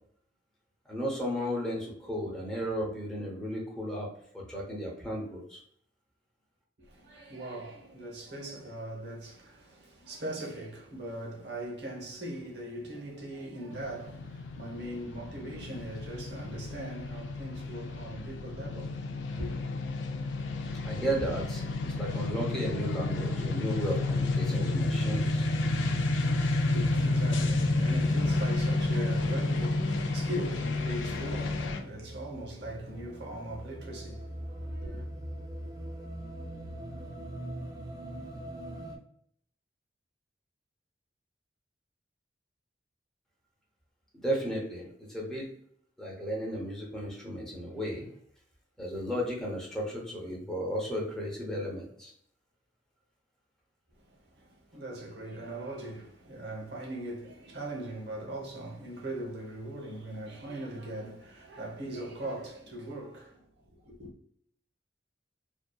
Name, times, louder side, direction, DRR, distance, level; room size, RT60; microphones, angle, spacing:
voice 1, 0.9-5.6 20.8-25.5 44.2-45.5 46.0-48.1 48.8-52.1, equal, 5° left, 0.7 m, -34 dB
voice 2, 6.8-19.0 19.4-19.6 26.5-35.1 54.0-64.1, right 1 dB, 65° right, 0.8 m, -40 dB
sound 1, 13.7-31.8, left 2 dB, 85° left, 0.4 m, -30 dB
sound 2, 30.3-39.0, right 1 dB, 20° right, 0.3 m, -42 dB
2.6 x 2.3 x 2.2 m
head